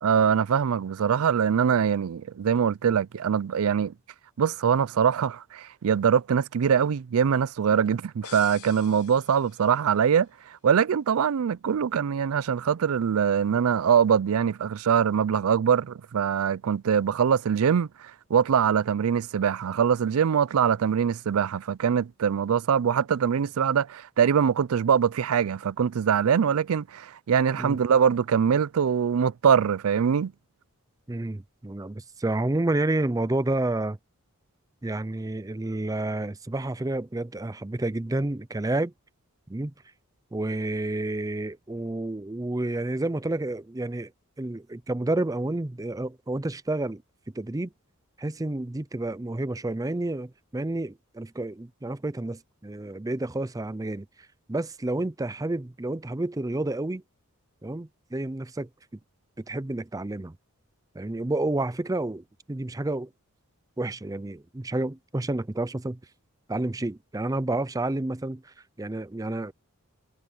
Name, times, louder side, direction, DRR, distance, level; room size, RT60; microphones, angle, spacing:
voice 1, 0.0-3.9 4.4-10.3 10.6-30.3, right 7 dB, 70° right, 0.4 m, -23 dB
sound 1, 8.2-10.0, left 11 dB, 90° left, 0.8 m, -47 dB
voice 2, 31.1-34.0 34.8-38.9 39.5-39.7 40.3-44.1 44.4-47.0 47.3-47.7 48.2-54.1 54.5-57.0 57.6-58.7 59.4-60.4 60.9-63.1 63.8-66.0 66.5-69.5, right 2 dB, 15° right, 0.5 m, -30 dB
head